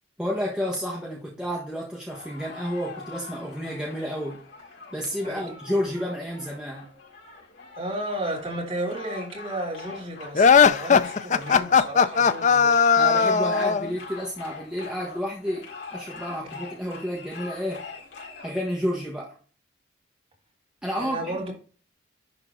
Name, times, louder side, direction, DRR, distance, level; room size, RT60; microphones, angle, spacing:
voice 1, 0.2-4.4 4.9-6.9 13.0-17.9 18.4-19.4 20.8-21.3, equal, 5° right, 1.3 m, -30 dB
sound 1, 2.1-18.5, left 4 dB, 85° left, 4.1 m, -43 dB
voice 2, 7.7-12.8 21.0-21.5, right 1 dB, 30° right, 3.2 m, -33 dB
sound 2, 10.3-13.9, left 6 dB, 40° left, 0.4 m, -18 dB
11.0 x 4.0 x 3.8 m
head